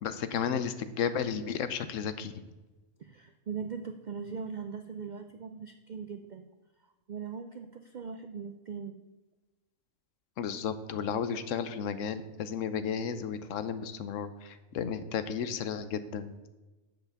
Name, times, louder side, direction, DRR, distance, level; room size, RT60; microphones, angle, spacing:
voice 1, 0.0-2.3 10.4-16.3, left 7 dB, 75° left, 12 dB, 1.0 m, -33 dB
voice 2, 3.0-6.5 7.1-9.0, right 6 dB, 65° right, 8 dB, 0.4 m, -40 dB
7.2 x 5.7 x 7.0 m, 1.1 s
omnidirectional pair, 1.3 m